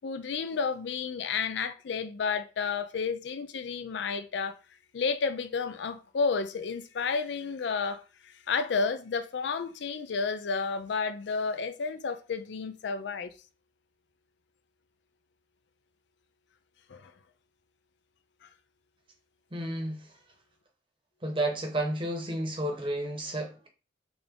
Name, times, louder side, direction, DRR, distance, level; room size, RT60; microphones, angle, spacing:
voice 1, 0.0-4.5 4.9-13.3 16.9-17.1, left 5 dB, 70° left, 0.4 m, -31 dB
voice 2, 19.5-20.0 21.2-23.7, right 1 dB, 25° right, 0.9 m, -31 dB
3.8 x 3.5 x 3.6 m
head